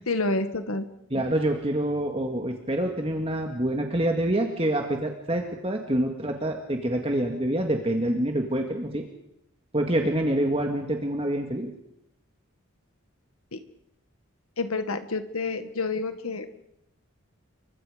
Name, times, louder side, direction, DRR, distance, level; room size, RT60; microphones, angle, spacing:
voice 1, 0.1-0.9 13.5-13.6 14.6-16.6, left 3 dB, 85° left, 9 dB, 1.8 m, -29 dB
voice 2, 1.1-9.0 9.7-11.7, right 1 dB, 25° right, 2 dB, 2.1 m, -26 dB
30.0 x 24.0 x 5.2 m, 0.78 s
head